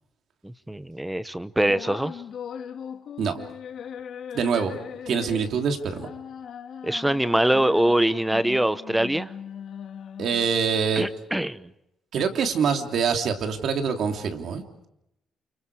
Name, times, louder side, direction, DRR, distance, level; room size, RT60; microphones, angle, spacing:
voice 1, 0.4-2.2 6.8-9.3 11.0-11.7, right 1 dB, 5° right, 14 dB, 0.9 m, -23 dB
sound 1, 1.6-10.6, left 8 dB, 55° left, 2.0 m, -39 dB
voice 2, 4.3-4.8 5.1-6.1 10.2-11.1 12.1-14.6, right 6 dB, 60° right, 5 dB, 3.2 m, -25 dB
30.0 x 29.0 x 4.9 m, 0.84 s
cardioid pair, 155°, 0 cm